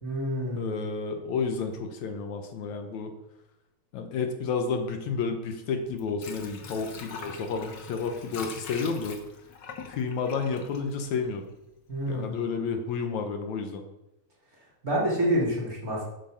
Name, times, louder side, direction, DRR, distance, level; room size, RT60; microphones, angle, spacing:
voice 1, 0.0-0.8 11.9-12.4 14.8-16.0, equal, 30° right, -5 dB, 3.1 m, -28 dB
voice 2, 0.6-3.1 3.9-9.2 9.9-11.4 12.1-13.8, left 5 dB, 70° left, 5 dB, 2.3 m, -31 dB
Water / Sink (filling or washing), 5.8-11.7 12.1-12.2, left 5 dB, 55° left, 1.3 m, -43 dB
8.7 x 7.8 x 6.5 m, 0.93 s
omnidirectional pair, 3.4 m